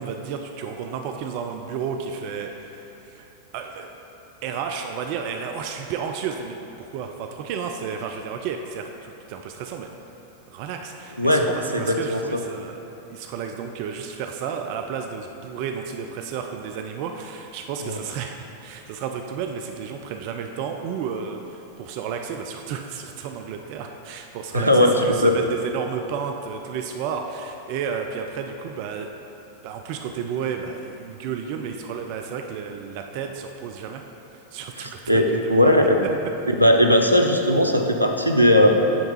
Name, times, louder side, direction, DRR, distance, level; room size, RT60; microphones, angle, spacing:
voice 1, 0.0-3.9 4.4-9.9 10.5-12.8 13.1-29.1 29.6-34.0 34.5-35.7, right 6 dB, 45° right, 4 dB, 0.4 m, -32 dB
voice 2, 11.2-11.5 11.7-12.4 17.8-18.0 24.5-25.0 25.2-25.3 34.8-36.0 36.6-38.7, left 1 dB, 90° left, 3 dB, 0.5 m, -18 dB
8.8 x 3.5 x 5.4 m, 2.9 s
figure-of-eight pair, 90°, 0 cm